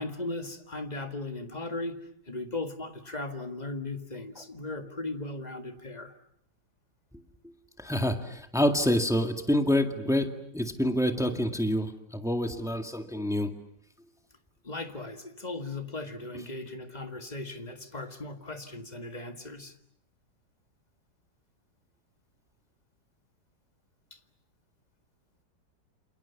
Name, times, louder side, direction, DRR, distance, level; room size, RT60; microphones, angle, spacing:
voice 1, 0.0-6.2 14.6-19.8 24.1-24.2, left 2 dB, 20° left, 7 dB, 1.9 m, -37 dB
voice 2, 7.8-13.5, left 1 dB, ahead, 6 dB, 1.8 m, -27 dB
28.5 x 28.0 x 7.2 m, 0.71 s
omnidirectional pair, 2.0 m